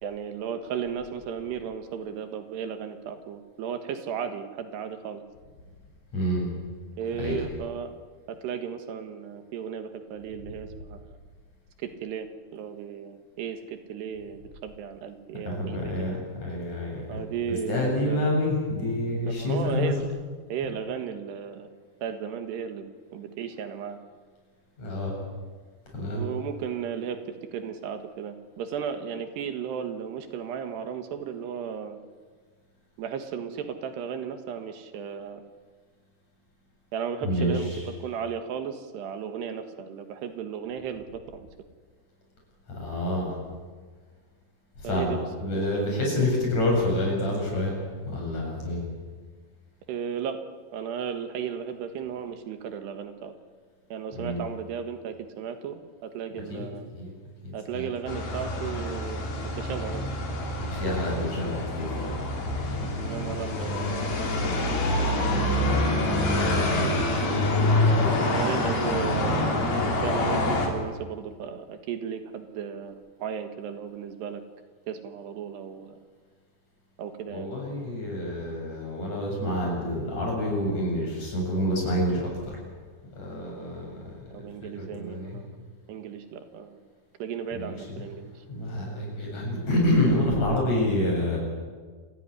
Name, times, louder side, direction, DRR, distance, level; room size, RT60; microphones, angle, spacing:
voice 1, 0.0-5.2 7.0-7.9 8.3-11.2 11.8-12.3 12.5-16.2 17.1-18.4 19.4-20.1 20.5-21.7 22.0-24.0 26.1-27.2 27.5-32.0 33.0-35.4 36.9-37.8 38.0-41.5 44.8-46.2 49.9-50.4 50.7-53.3 53.9-56.9 57.5-59.3 59.6-60.1 63.0-65.4 68.2-69.5 69.9-74.4 74.9-76.0 77.0-77.5 84.3-85.5 85.9-86.8 87.2-88.4, right 7 dB, 80° right, 8 dB, 3.7 m, -35 dB
voice 2, 6.1-6.5 7.2-7.4 15.4-17.2 17.5-19.9 24.8-25.2 25.9-26.3 37.2-37.8 42.7-43.3 44.8-47.7 48.1-48.8 54.2-54.4 56.5-56.7 56.9-57.2 57.4-57.9 60.7-62.2 63.5-63.6 66.6-66.9 67.9-68.1 77.3-82.6 83.2-85.4 87.5-88.0 88.5-91.4, left 1 dB, 40° left, -1 dB, 9.0 m, -28 dB
sound 1, 58.1-70.7, left 1 dB, 65° left, 5.4 m, -26 dB
27.5 x 17.0 x 9.9 m, 1.5 s
omnidirectional pair, 4.8 m